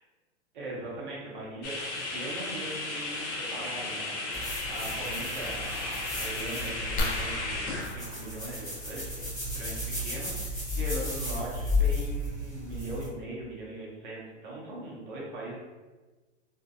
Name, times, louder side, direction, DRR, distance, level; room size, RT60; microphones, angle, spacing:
voice 1, 0.5-1.7 2.1-9.2 9.5-15.6, right 1 dB, 45° right, -5 dB, 0.8 m, -40 dB
sound 1, 1.6-7.9, left 2 dB, 80° left, 0.7 m, -35 dB
sound 2, 4.3-13.1, left 2 dB, 10° left, 0.8 m, -34 dB
sound 3, 7.0-9.4 11.0-11.1 11.7-11.8 12.1-12.3, left 1 dB, 50° left, 0.4 m, -36 dB
2.6 x 2.1 x 2.3 m, 1.3 s
supercardioid pair, 175°, 35 cm